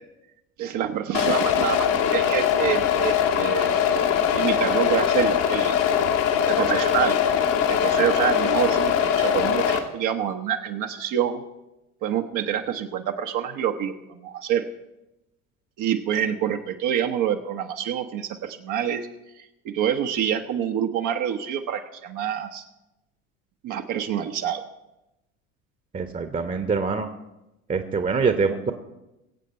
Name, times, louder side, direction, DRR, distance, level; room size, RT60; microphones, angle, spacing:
voice 1, 0.6-3.7 4.3-5.8 6.5-7.2 7.7-11.4 12.0-14.7 15.8-19.0 19.4-22.6 23.6-24.6, right 9 dB, 45° right, 4 dB, 1.1 m, -27 dB
sound 1, 1.1-9.8, left 8 dB, 65° left, 1.9 m, -22 dB
voice 2, 25.9-27.1 27.7-28.7, right 5 dB, 20° right, 8 dB, 1.1 m, -24 dB
22.0 x 8.3 x 4.4 m, 0.95 s
figure-of-eight pair, 65°, 41 cm